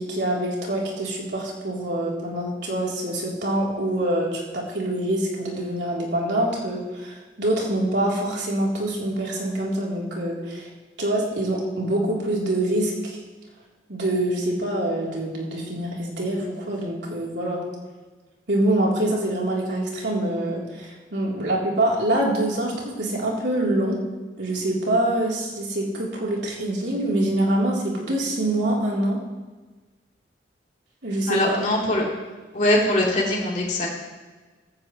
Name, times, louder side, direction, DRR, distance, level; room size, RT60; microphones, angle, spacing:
voice 1, 0.0-10.7 11.0-13.2 13.9-17.7 18.5-24.0 24.4-29.2 31.0-31.6, right 1 dB, 75° right, -4 dB, 3.6 m, -25 dB
voice 2, 31.3-32.0 32.5-33.9, left 1 dB, 45° left, -4 dB, 3.6 m, -22 dB
16.5 x 15.5 x 3.2 m, 1.3 s
head